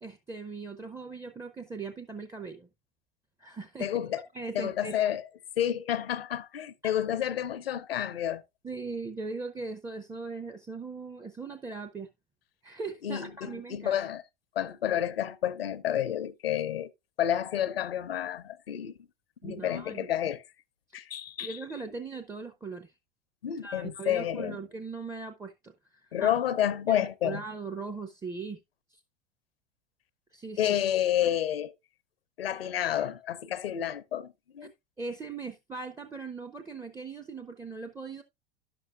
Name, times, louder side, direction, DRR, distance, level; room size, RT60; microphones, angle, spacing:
voice 1, 0.0-2.7 3.4-3.9 4.3-4.9 6.8-7.0 8.6-12.1 12.6-14.0 19.4-20.1 21.4-22.9 23.6-25.7 26.2-26.3 26.9-28.6 28.9-29.0 30.3-30.6 34.6-34.7 35.0-38.2, right 4 dB, 10° right, 0.5 m, -39 dB
voice 2, 3.8-4.3 4.5-5.3 5.6-8.4 13.0-14.2 14.5-16.9 17.2-19.0 19.4-20.4 20.9-21.8 23.4-24.6 26.1-27.4 30.6-31.7 32.4-34.7, left 11 dB, 80° left, 0.6 m, -30 dB
10.5 x 6.8 x 2.4 m
hypercardioid pair, 90°, 29 cm